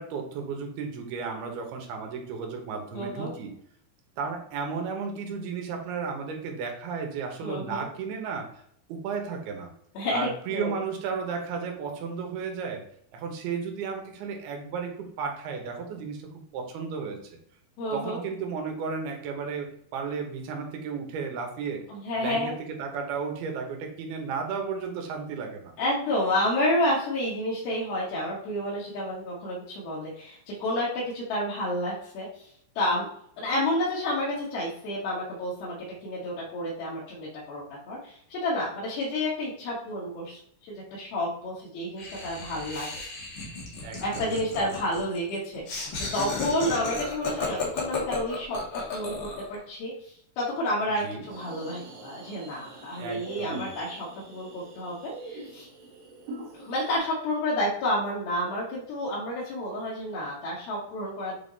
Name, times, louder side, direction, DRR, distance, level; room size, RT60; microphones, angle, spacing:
voice 1, 0.0-3.5 4.2-8.6 8.9-9.7 10.1-12.9 13.1-17.2 17.9-21.8 22.2-25.7 43.8-44.7 46.7-46.8 51.0-51.2 53.0-53.7, right 5 dB, 85° right, 3 dB, 3.1 m, -34 dB
voice 2, 2.9-3.3 7.4-7.9 10.0-10.8 17.8-18.2 21.9-22.6 25.8-32.5 32.8-33.1 33.4-35.8 36.0-42.9 44.0-45.9 46.1-48.6 48.9-55.7 56.5-61.4, left 1 dB, 75° left, -8 dB, 3.4 m, -30 dB
Laughter, 42.0-49.5, left 3 dB, 50° left, 1.5 m, -34 dB
sound 1, 51.3-57.0, right 2 dB, 60° right, 2.3 m, -43 dB
8.1 x 3.7 x 4.0 m, 0.69 s
omnidirectional pair, 4.4 m